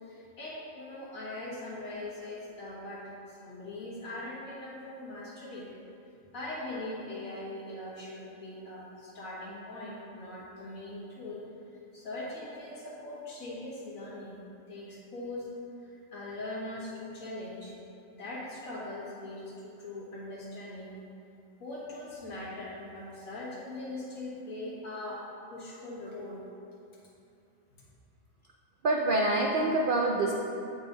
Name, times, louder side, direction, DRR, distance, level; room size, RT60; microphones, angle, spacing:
voice 1, 0.0-3.0 3.3-5.7 6.3-11.4 11.9-14.4 14.7-15.5 15.8-17.7 18.2-20.9 21.6-25.2 25.5-26.4, left 2 dB, 90° left, -6 dB, 1.8 m, -41 dB
voice 2, 28.8-30.3, right 2 dB, 75° right, 0 dB, 0.4 m, -26 dB
8.7 x 4.0 x 3.9 m, 2.6 s
omnidirectional pair, 1.4 m